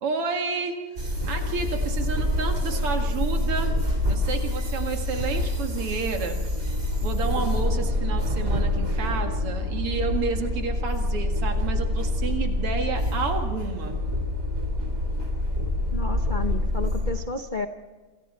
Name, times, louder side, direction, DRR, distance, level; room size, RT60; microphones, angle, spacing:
voice 1, 0.0-0.8 1.3-3.8 4.1-6.4 7.0-14.0, right 5 dB, 90° right, 4 dB, 2.9 m, -30 dB
sound 1, 1.0-17.1, left 1 dB, 30° right, 3.9 m, -26 dB
voice 2, 15.9-17.7, left 3 dB, 80° left, 7 dB, 0.4 m, -32 dB
27.0 x 26.5 x 4.4 m, 1.4 s
omnidirectional pair, 2.4 m